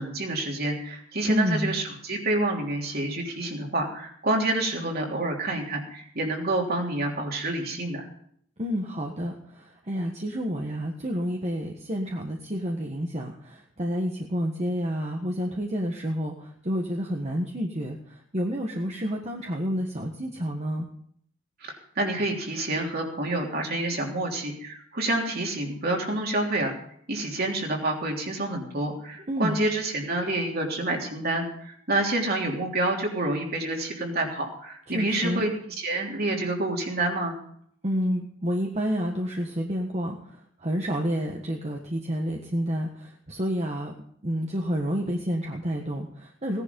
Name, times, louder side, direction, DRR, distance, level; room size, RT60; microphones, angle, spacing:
voice 1, 0.0-8.1 21.6-26.7 27.1-35.5 35.8-37.4, right 2 dB, 50° right, 0 dB, 3.3 m, -28 dB
voice 2, 1.2-1.8 8.6-20.9 29.3-29.6 34.9-35.4 37.8-43.9 44.2-46.6, equal, 35° right, 1 dB, 1.5 m, -29 dB
17.5 x 11.0 x 5.3 m, 0.65 s
head